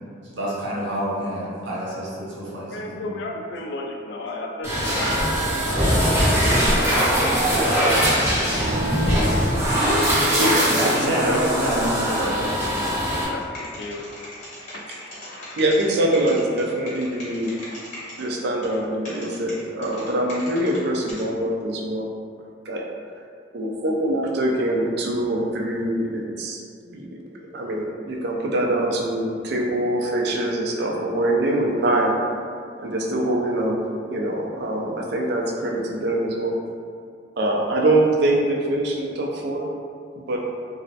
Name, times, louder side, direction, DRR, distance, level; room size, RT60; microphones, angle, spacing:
voice 1, 0.3-3.1 10.5-13.2, equal, 80° right, -6 dB, 0.8 m, -28 dB
voice 2, 2.7-7.2 7.8-9.0 10.2-10.5 13.3-14.1 14.7-15.6, left 2 dB, 65° left, 1 dB, 0.3 m, -35 dB
sound 1, 4.6-13.2, equal, 15° right, 0.6 m, -21 dB
voice 3, 10.3-10.9 11.2-11.6 15.6-17.5 18.2-22.1 22.7-22.8 23.5-32.2 32.8-33.8 34.1-36.6 37.4-39.7 40.2-40.4, right 1 dB, 60° right, -1 dB, 0.4 m, -24 dB
sound 2, 12.1-15.8 16.1-18.2 18.6-18.8 19.0-20.8 21.1-21.2, left 1 dB, 40° left, 0.8 m, -39 dB
3.1 x 2.0 x 2.7 m, 2.2 s
head